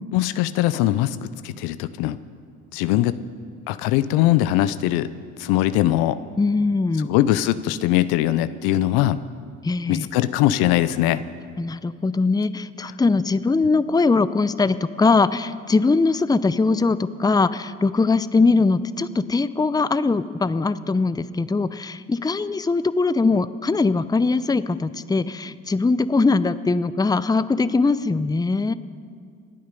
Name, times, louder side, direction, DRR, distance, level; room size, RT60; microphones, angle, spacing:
voice 1, 0.1-2.2 2.7-3.2 3.7-5.1 5.4-6.2 7.1-9.2 9.9-11.2, left 14 dB, 75° left, 14 dB, 0.7 m, -21 dB
voice 2, 6.4-7.1 9.6-10.1 11.6-28.7, left 3 dB, 10° left, 14 dB, 0.6 m, -21 dB
27.0 x 9.4 x 5.3 m, 2.1 s
hypercardioid pair, 60°, 38 cm